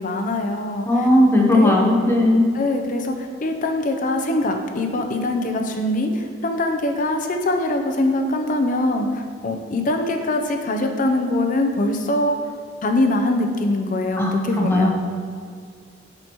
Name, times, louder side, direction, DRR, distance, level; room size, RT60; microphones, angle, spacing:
voice 1, 0.0-1.1 1.4-1.8 2.5-3.2 3.4-12.4 12.8-14.9, left 1 dB, 45° left, 5 dB, 0.6 m, -23 dB
voice 2, 0.9-2.5 14.2-14.9, left 1 dB, 10° left, 0 dB, 0.8 m, -17 dB
7.7 x 5.7 x 3.0 m, 2.1 s
head